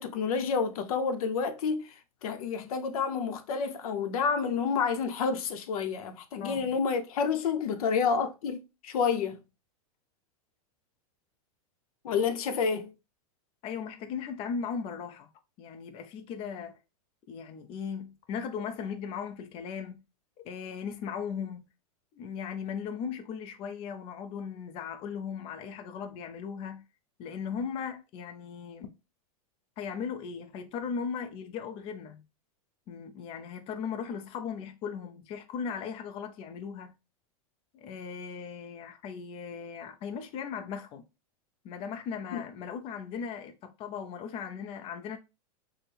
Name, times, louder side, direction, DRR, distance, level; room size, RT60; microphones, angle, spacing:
voice 1, 0.0-1.9 2.2-9.4 12.0-12.9 42.3-42.4, left 5 dB, 75° left, 0.6 m, -29 dB
voice 2, 6.4-6.7 13.6-15.3 15.6-16.8 17.3-20.0 20.4-21.7 22.1-26.8 27.2-28.9 29.8-32.2 32.9-36.9 37.7-41.0 41.6-45.2, left 6 dB, 30° left, 0.4 m, -37 dB
4.2 x 2.1 x 3.4 m
supercardioid pair, 135°, 19 cm